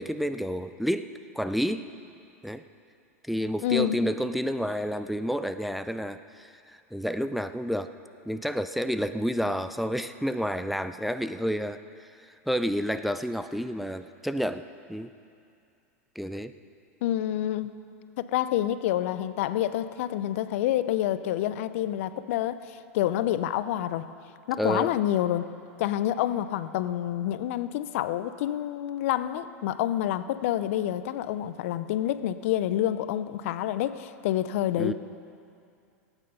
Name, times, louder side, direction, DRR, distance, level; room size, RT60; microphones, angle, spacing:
voice 1, 0.0-1.9 2.4-2.6 3.3-7.9 8.3-11.8 12.5-15.1 16.2-16.5 24.6-24.9 34.8-34.9, equal, ahead, 10 dB, 0.4 m, -30 dB
voice 2, 3.6-4.0 17.0-17.7 18.2-24.1 24.5-25.4 25.8-34.9, left 12 dB, 65° left, 14 dB, 0.5 m, -28 dB
17.5 x 9.1 x 5.4 m, 2.5 s
hypercardioid pair, 100°, 8 cm